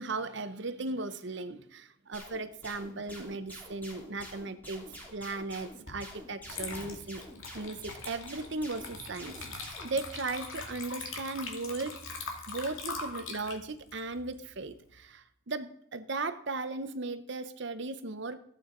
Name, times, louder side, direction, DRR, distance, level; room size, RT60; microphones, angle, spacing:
voice 1, 0.0-7.2 7.5-12.0 12.5-18.4, right 3 dB, 55° right, 11 dB, 0.8 m, -37 dB
sound 1, 2.1-10.0, equal, 10° left, 2.7 m, -48 dB
Water / Liquid, 5.9-6.0 6.4-15.0, left 4 dB, 75° left, 2.1 m, -42 dB
15.0 x 8.5 x 3.8 m, 0.73 s
head